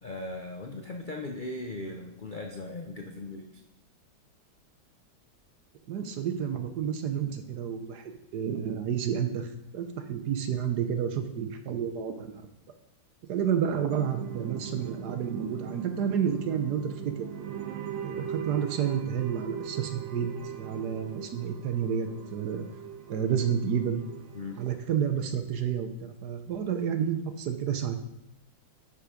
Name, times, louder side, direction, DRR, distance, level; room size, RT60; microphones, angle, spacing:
voice 1, 0.0-3.6 24.3-24.6, left 2 dB, 60° left, 2 dB, 0.5 m, -38 dB
voice 2, 5.9-12.3 13.3-17.3 18.0-20.3 20.6-22.7 23.1-24.0 24.6-28.0, right 8 dB, 65° right, 8 dB, 1.2 m, -30 dB
sound 1, 13.9-24.8, right 8 dB, 85° right, 1.6 m, -40 dB
9.9 x 5.7 x 5.0 m, 0.83 s
omnidirectional pair, 2.1 m